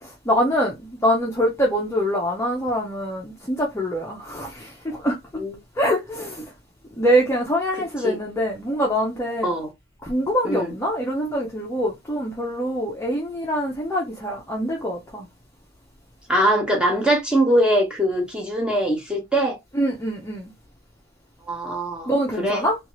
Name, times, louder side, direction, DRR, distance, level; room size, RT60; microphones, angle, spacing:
voice 1, 0.0-5.4 5.8-6.5 7.0-9.5 10.0-15.3 19.7-20.5 22.1-22.8, equal, 15° left, 0.5 m, -24 dB
voice 2, 16.3-19.6 21.5-22.1 22.4-22.6, right 1 dB, 5° right, 0.9 m, -22 dB
2.8 x 2.3 x 3.0 m
head